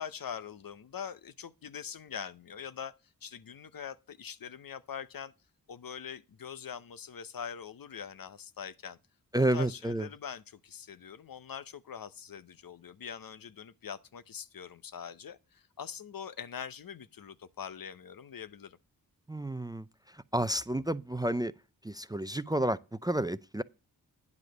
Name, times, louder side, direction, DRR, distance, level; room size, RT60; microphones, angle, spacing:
voice 1, 0.0-2.9 3.2-5.3 5.7-9.0 9.5-18.8, left 7 dB, 65° left, 0.8 m, -43 dB
voice 2, 9.3-10.1 19.3-21.5 21.8-23.6, right 1 dB, 10° right, 0.5 m, -31 dB
9.7 x 4.9 x 6.0 m
cardioid pair, 55°, 37 cm